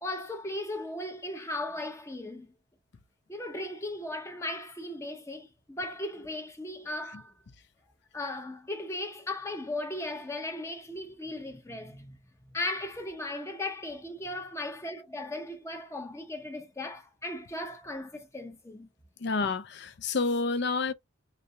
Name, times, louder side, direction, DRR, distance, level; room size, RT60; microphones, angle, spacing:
voice 1, 0.0-2.5 3.3-7.3 8.1-12.2 12.4-18.9, left 1 dB, 15° left, 0.7 m, -37 dB
voice 2, 19.2-20.9, left 4 dB, 55° left, 0.5 m, -29 dB
4.1 x 2.6 x 3.2 m
head